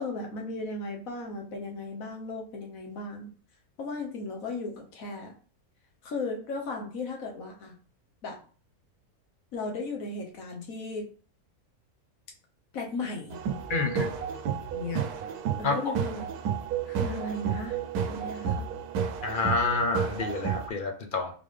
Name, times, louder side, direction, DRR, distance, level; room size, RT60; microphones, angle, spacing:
voice 1, 0.0-3.3 3.8-5.3 6.0-7.7 8.2-8.4 9.5-11.1 12.7-13.4 14.7-15.1 15.6-16.3 16.9-17.8 18.1-18.7, left 3 dB, 65° left, 2 dB, 1.3 m, -36 dB
sound 1, 13.3-20.7, right 7 dB, 80° right, 1.1 m, -31 dB
voice 2, 13.7-14.1 15.6-15.9 19.2-21.3, left 3 dB, 45° left, 5 dB, 0.7 m, -28 dB
3.8 x 3.7 x 3.3 m, 0.40 s
omnidirectional pair, 1.6 m